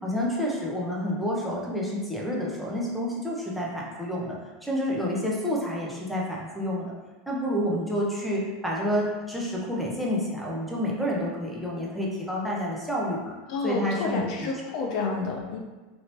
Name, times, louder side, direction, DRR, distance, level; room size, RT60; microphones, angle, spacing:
voice 1, 0.0-6.9 7.3-13.3 13.6-14.5, equal, ahead, -4 dB, 0.9 m, -29 dB
voice 2, 13.5-15.6, left 4 dB, 60° left, 0 dB, 0.5 m, -29 dB
3.0 x 2.7 x 3.0 m, 1.2 s
hypercardioid pair, 90°, 0 cm